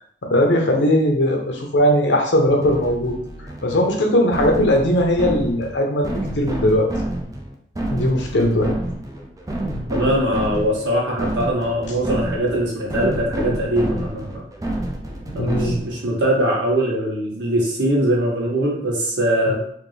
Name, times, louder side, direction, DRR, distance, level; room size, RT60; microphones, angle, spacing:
voice 1, 0.3-3.1 3.6-6.1 6.4-6.9 7.9-8.8 15.4-15.8 19.5-19.6, left 1 dB, 80° left, 2 dB, 0.8 m, -19 dB
sound 1, 2.6-16.1, right 1 dB, 20° right, 0.5 m, -29 dB
voice 2, 9.9-14.4 15.3-19.5, right 1 dB, 85° right, -4 dB, 1.4 m, -21 dB
3.6 x 2.6 x 3.2 m, 0.65 s
head